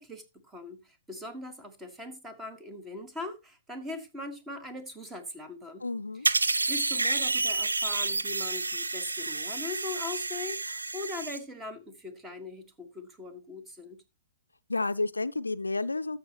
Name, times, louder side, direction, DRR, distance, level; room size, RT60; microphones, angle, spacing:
voice 1, 0.0-5.8 6.7-14.0, left 2 dB, 10° right, 1.6 m, -41 dB
voice 2, 5.8-6.3 14.7-16.2, left 3 dB, 85° left, 0.4 m, -30 dB
sound 1, 6.2-11.4, right 3 dB, 80° right, 0.6 m, -29 dB
13.0 x 6.9 x 2.9 m
figure-of-eight pair, 115°, 0 cm